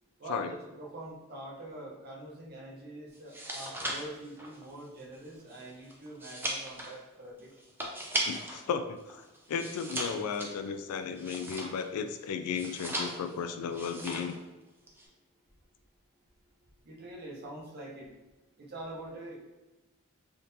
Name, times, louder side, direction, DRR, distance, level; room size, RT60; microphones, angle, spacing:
voice 1, 0.2-7.5 16.8-18.1 18.6-19.4, right 1 dB, 45° right, -3 dB, 0.8 m, -44 dB
sound 1, 3.2-8.6 9.0-12.0 12.5-13.4 13.7-14.4 14.7-15.1, right 1 dB, 10° right, 0.4 m, -37 dB
voice 2, 8.3-14.4, left 6 dB, 80° left, 8 dB, 0.3 m, -35 dB
3.6 x 2.6 x 2.6 m, 1.0 s
head